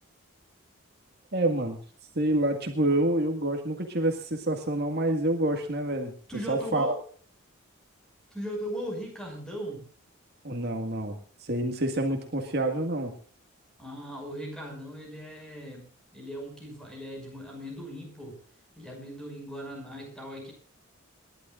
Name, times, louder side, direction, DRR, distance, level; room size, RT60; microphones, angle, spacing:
voice 1, 1.3-1.8 2.2-6.1 6.5-6.9 10.4-13.1, right 1 dB, 50° right, 4 dB, 1.8 m, -27 dB
voice 2, 6.3-7.0 8.3-9.9 13.8-18.4 18.8-20.5, equal, 5° left, 0 dB, 6.0 m, -38 dB
27.5 x 11.5 x 2.5 m, 0.43 s
head